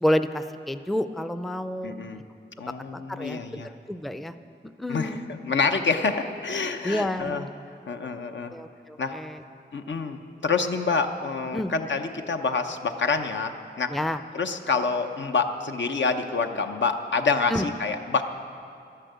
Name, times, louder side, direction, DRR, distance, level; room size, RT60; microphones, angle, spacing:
voice 1, 0.0-1.9 2.9-4.3 4.8-5.2 6.8-7.5 8.5-9.4 11.5-11.7 13.9-14.2 17.5-17.7, left 1 dB, ahead, 10 dB, 0.4 m, -29 dB
voice 2, 1.8-2.2 2.6-3.7 4.9-7.5 7.9-8.5 9.0-9.2 9.7-13.9 14.3-18.2, left 4 dB, 80° left, 6 dB, 0.8 m, -27 dB
12.0 x 10.0 x 8.0 m, 2.4 s
wide cardioid pair, 100°, 19 cm